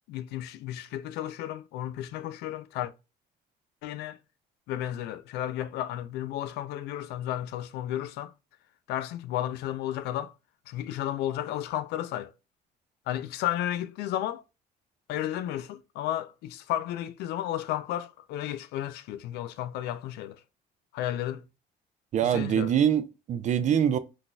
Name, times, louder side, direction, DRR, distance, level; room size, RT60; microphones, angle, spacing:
voice 1, 0.1-2.9 3.8-4.2 4.7-8.3 8.9-10.3 10.7-12.3 13.1-14.4 15.1-20.4 20.9-21.5 22.2-22.7, left 12 dB, 80° left, 0.4 m, -33 dB
voice 2, 22.1-24.0, right 9 dB, 45° right, 0.4 m, -24 dB
3.9 x 2.5 x 2.2 m
cardioid pair, 110°, 17 cm